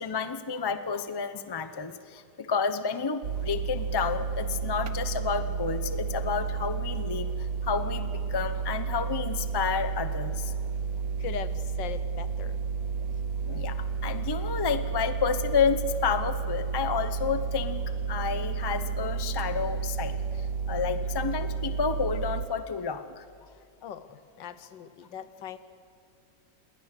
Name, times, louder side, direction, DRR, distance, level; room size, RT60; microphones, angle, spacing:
voice 1, 0.0-10.5 13.5-17.8 18.1-23.2, left 6 dB, 25° left, 10 dB, 0.5 m, -30 dB
sound 1, 3.2-22.5, right 5 dB, 60° right, 1.3 m, -31 dB
voice 2, 11.2-12.6 23.8-25.6, left 9 dB, 80° left, 13 dB, 1.7 m, -39 dB
27.5 x 20.5 x 6.8 m, 2.5 s
omnidirectional pair, 2.0 m